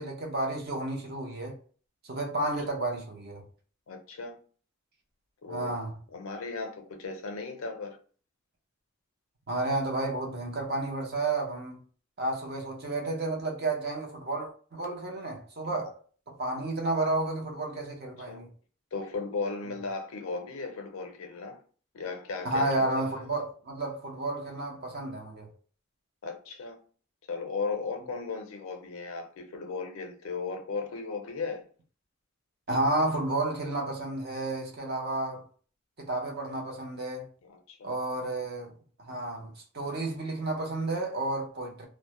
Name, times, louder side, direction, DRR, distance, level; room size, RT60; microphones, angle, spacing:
voice 1, 0.0-1.5 2.0-3.4 5.5-5.9 9.5-11.8 12.2-15.9 16.4-18.5 22.4-25.5 32.7-35.4 36.0-37.3 37.8-38.7 39.0-41.9, right 2 dB, 45° right, 0.6 m, -31 dB
voice 2, 3.9-4.4 5.4-5.7 6.1-8.0 15.6-15.9 18.3-18.4 18.9-21.6 21.9-22.7 22.9-23.0 26.2-26.8 27.3-31.7 37.4-38.0, left 4 dB, 70° left, 0.5 m, -36 dB
2.2 x 2.0 x 2.8 m
head